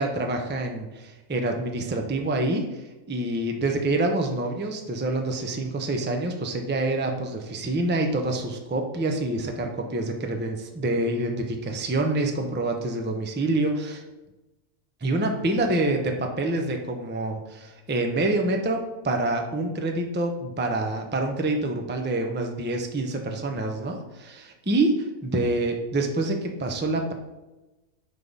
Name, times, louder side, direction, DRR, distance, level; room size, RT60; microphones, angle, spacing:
voice 1, 0.0-2.8 3.1-14.0 15.0-18.8 19.0-27.1, right 2 dB, 10° right, 3 dB, 0.5 m, -26 dB
9.8 x 3.8 x 5.4 m, 1.0 s
omnidirectional pair, 1.6 m